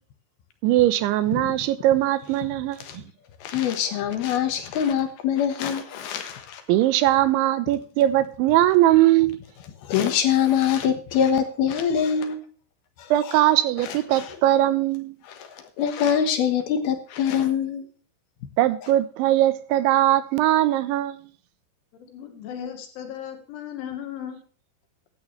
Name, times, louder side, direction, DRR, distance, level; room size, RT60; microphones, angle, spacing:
voice 1, 0.6-3.0 6.7-9.4 13.1-15.2 18.6-21.3, right 14 dB, 85° right, 3.2 m, -20 dB
voice 2, 3.4-6.6 9.8-12.4 13.0-13.1 14.1-14.3 15.4-17.8, left 8 dB, 65° left, 2.9 m, -24 dB
voice 3, 22.0-24.4, left 9 dB, 85° left, 4.4 m, -36 dB
15.5 x 11.5 x 3.2 m
omnidirectional pair, 5.3 m